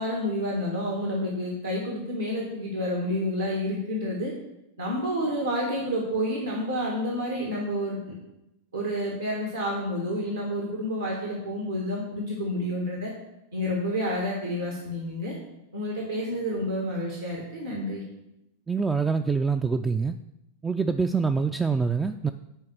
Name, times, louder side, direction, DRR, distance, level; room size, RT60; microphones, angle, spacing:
voice 1, 0.0-4.3 4.8-8.0 8.7-13.1 13.5-15.3 15.7-18.0, equal, 75° right, -2 dB, 1.6 m, -29 dB
voice 2, 18.7-20.2 20.6-22.3, right 5 dB, 15° right, 8 dB, 0.3 m, -25 dB
9.9 x 3.5 x 6.6 m, 0.90 s
figure-of-eight pair, 90°, 0 cm